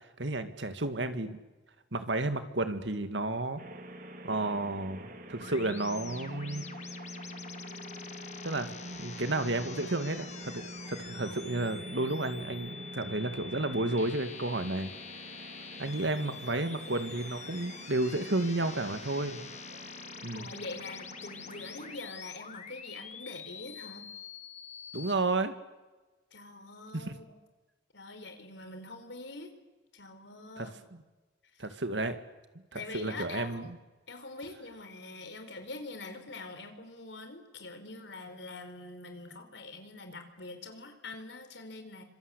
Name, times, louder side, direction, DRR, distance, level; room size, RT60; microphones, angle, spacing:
voice 1, 0.2-1.4 1.9-3.6 4.2-6.7 8.4-14.9 15.8-19.5 20.2-20.5 24.9-25.5 26.9-27.1 30.6-30.7 31.6-32.2 32.7-33.7, right 2 dB, 70° right, 9 dB, 2.2 m, -32 dB
sound 1, 3.6-22.0, right 1 dB, 50° right, 2.9 m, -46 dB
sound 2, 5.4-25.1, left 7 dB, 40° left, 1.4 m, -46 dB
voice 2, 20.3-24.1 26.3-27.3 27.9-29.5 29.9-30.8 31.5-31.7 32.7-33.7 34.1-42.0, left 3 dB, 70° left, 7 dB, 4.2 m, -44 dB
27.5 x 26.0 x 8.3 m, 1.2 s
head